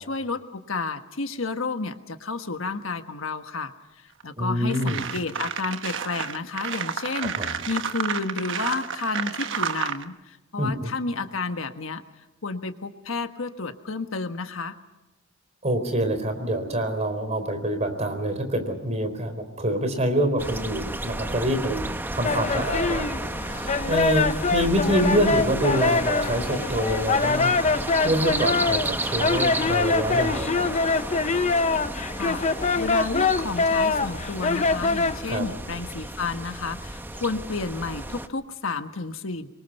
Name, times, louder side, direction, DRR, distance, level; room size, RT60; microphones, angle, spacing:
voice 1, 0.1-3.7 4.0-7.3 7.7-12.0 12.4-14.8 32.2-39.5, left 3 dB, 70° left, 8 dB, 1.4 m, -31 dB
Walking On Frozen Snow Handheld Mic, 4.2-4.3 4.7-10.0, right 7 dB, 65° right, 1.2 m, -31 dB
voice 2, 4.4-5.0 7.2-7.6 10.6-10.9 15.6-21.8 22.1-27.5 28.0-30.7 35.3-35.5, right 1 dB, 35° right, 7 dB, 4.2 m, -26 dB
sound 1, 20.4-38.3, right 1 dB, 10° right, 0.9 m, -32 dB
sound 2, 22.2-35.2, left 4 dB, 35° left, 0.7 m, -24 dB
27.0 x 23.5 x 5.5 m, 1.0 s
head